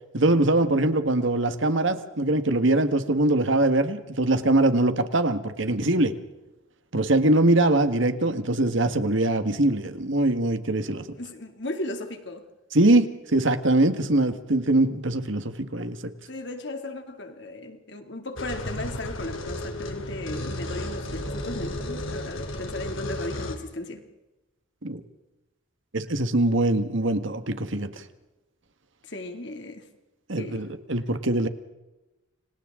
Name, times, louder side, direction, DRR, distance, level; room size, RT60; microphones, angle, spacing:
voice 1, 0.1-6.1 6.9-11.0 12.7-13.1 13.3-16.1 24.8-25.0 25.9-27.9 30.3-31.5, right 2 dB, 70° right, 9 dB, 1.7 m, -22 dB
voice 2, 11.1-12.4 16.3-24.1 29.0-29.9 30.4-30.7, left 1 dB, 60° left, 5 dB, 2.7 m, -36 dB
sound 1, 18.4-23.6, left 1 dB, 80° left, 3.0 m, -33 dB
30.0 x 26.0 x 3.8 m, 1.0 s
head